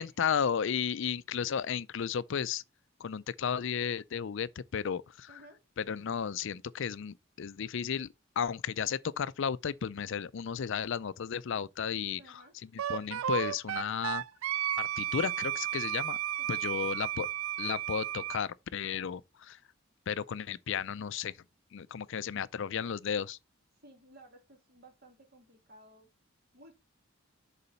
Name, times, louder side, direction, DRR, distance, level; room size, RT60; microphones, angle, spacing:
voice 1, 0.0-2.6 3.0-5.4 5.8-8.1 8.4-12.2 12.9-14.2 14.8-16.2 16.5-17.3 17.6-19.6 20.1-21.3 21.7-23.4, left 7 dB, 65° left, 0.4 m, -33 dB
voice 2, 5.3-5.6 12.2-12.6 16.4-17.0 23.8-26.1 26.5-26.7, right 1 dB, 50° right, 2.6 m, -57 dB
Wind instrument woodwind instrument, 12.8-18.4, right 12 dB, 80° right, 0.4 m, -33 dB
6.8 x 4.1 x 5.4 m
head